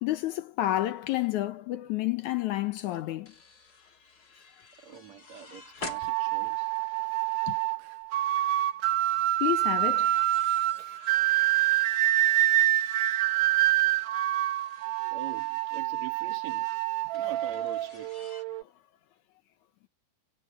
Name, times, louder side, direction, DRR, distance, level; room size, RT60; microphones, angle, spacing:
voice 1, 0.0-3.3 7.5-7.6 9.4-10.2, left 15 dB, 80° left, 2.2 m, -30 dB
sound 1, 2.7-7.4 7.8-8.1 9.7-15.8 17.1-18.4, left 4 dB, 30° left, 2.6 m, -49 dB
voice 2, 4.8-6.7 15.1-16.7 17.1-18.1, right 8 dB, 60° right, 3.7 m, -44 dB
Flauta de armónicos, 5.8-18.6, right 15 dB, 75° right, 1.7 m, -27 dB
omnidirectional pair, 3.6 m